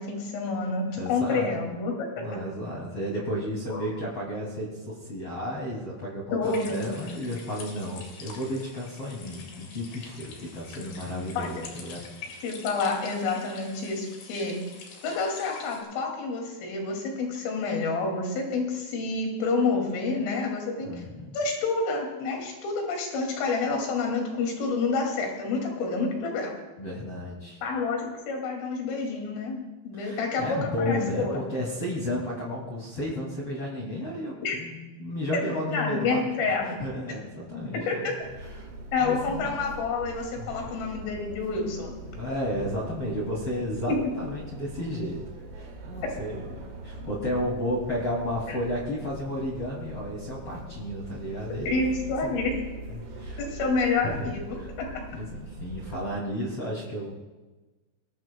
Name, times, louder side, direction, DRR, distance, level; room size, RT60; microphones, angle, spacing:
voice 1, 0.0-2.2 3.7-3.8 6.3-6.9 11.4-11.6 12.4-14.6 15.0-20.9 21.3-26.6 27.6-29.6 29.8-31.4 34.4-34.6 35.7-36.8 37.9-38.1 38.9-42.0 43.9-44.0 48.5-48.6 51.7-52.5 53.4-54.9, left 3 dB, 85° left, 1 dB, 5.1 m, -28 dB
voice 2, 1.0-1.5 2.2-12.0 17.3-17.4 20.9-21.3 26.8-27.6 29.9-36.2 36.6-38.1 38.4-38.7 39.0-39.4 40.4-40.7 41.7-45.2 45.5-51.8 52.9-53.4 54.0-54.3 54.6-54.7 55.1-57.1, left 1 dB, 35° left, -4 dB, 2.8 m, -33 dB
sound 1, 6.4-15.8, left 4 dB, 70° left, 4.4 m, -44 dB
sound 2, 38.2-56.1, right 1 dB, 75° right, 4.4 m, -41 dB
21.5 x 19.5 x 2.3 m, 1.2 s
omnidirectional pair, 5.6 m